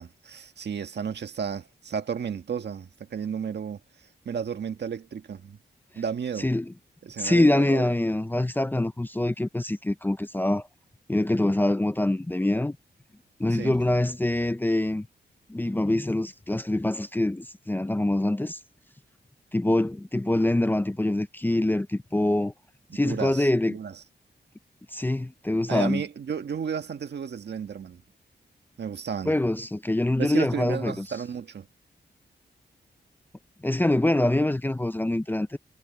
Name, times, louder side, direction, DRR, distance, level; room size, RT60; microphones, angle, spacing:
voice 1, 0.0-5.6 5.9-6.5 7.0-7.8 13.5-13.8 22.9-24.0 25.7-28.0 28.8-29.3 30.2-31.7, right 7 dB, 70° right, 1.6 m, -33 dB
voice 2, 7.2-10.7 11.1-12.8 13.4-15.1 15.5-18.6 19.5-22.5 22.9-23.7 24.9-26.0 29.3-30.9 33.6-35.6, left 1 dB, 10° left, 0.6 m, -24 dB
wide cardioid pair, 140°, 18 cm